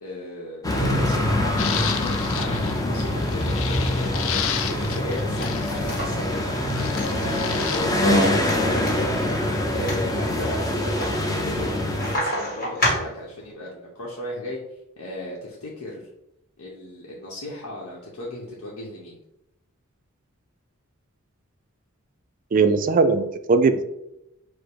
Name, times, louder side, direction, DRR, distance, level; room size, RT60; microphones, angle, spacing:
voice 1, 0.0-6.5 7.2-9.0 9.7-14.6 15.0-16.0 16.6-19.2, left 1 dB, 85° left, -5 dB, 0.9 m, -35 dB
sound 1, 0.6-12.2, left 1 dB, 15° left, 0.6 m, -24 dB
sound 2, 1.6-6.2 6.6-7.9, left 9 dB, 65° left, 0.4 m, -32 dB
sound 3, 5.4-13.5, equal, 45° left, 1.6 m, -32 dB
voice 2, 22.5-23.8, right 4 dB, 40° right, 9 dB, 0.3 m, -19 dB
4.9 x 2.1 x 4.5 m, 0.87 s
head